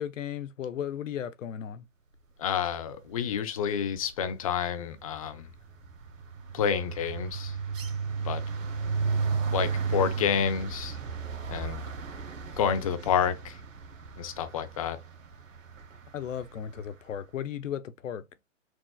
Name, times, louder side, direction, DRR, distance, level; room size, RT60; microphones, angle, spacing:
voice 1, 0.0-1.9 16.1-18.2, left 9 dB, 75° left, 0.7 m, -35 dB
voice 2, 2.4-5.5 6.5-7.5 8.2-8.4 9.5-11.0 11.5-11.8 12.6-13.6 14.2-15.0, left 7 dB, 30° left, 0.5 m, -29 dB
sound 1, 3.1-3.4 3.7-16.9, right 5 dB, 80° right, 1.2 m, -35 dB
6.0 x 2.4 x 2.3 m
hypercardioid pair, 150°, 38 cm